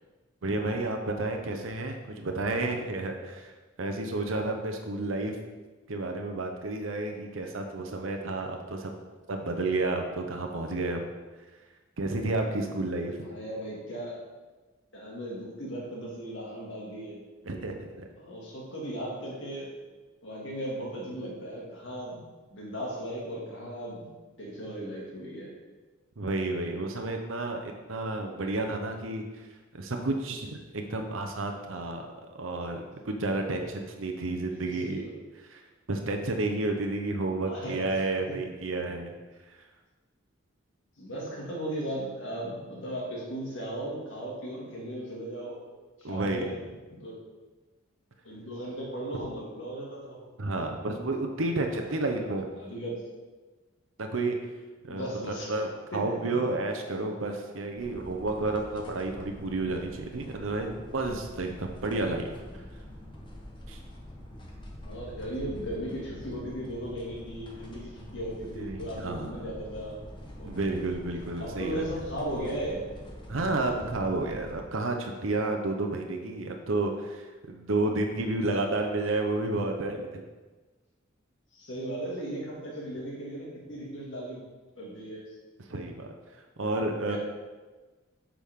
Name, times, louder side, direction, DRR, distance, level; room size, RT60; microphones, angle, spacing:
voice 1, 0.4-3.5 3.8-5.4 5.9-8.9 9.3-11.1 12.0-13.2 17.5-18.1 26.2-29.2 29.7-35.0 35.5-35.6 35.9-39.1 46.0-46.5 50.4-52.5 54.0-54.4 54.9-55.1 55.5-62.3 63.7-63.8 68.5-69.5 70.5-71.8 73.3-80.2 85.7-86.1 86.6-87.2, right 2 dB, 75° right, 3 dB, 0.8 m, -31 dB
voice 2, 13.2-14.2 14.9-17.2 18.2-19.7 20.2-22.2 22.5-24.1 24.4-25.5 34.3-35.1 37.5-37.9 38.3-38.4 41.0-45.6 46.0-46.6 46.9-47.2 48.2-50.3 52.2-52.3 52.6-52.9 54.8-55.5 55.9-56.3 64.8-70.0 70.4-70.5 71.4-72.9 81.5-84.4 84.8-85.3 87.1-87.2, right 1 dB, 65° left, -3 dB, 2.2 m, -37 dB
sound 1, 57.8-74.6, equal, 25° left, 1.2 m, -45 dB
8.3 x 6.1 x 3.6 m, 1.3 s
head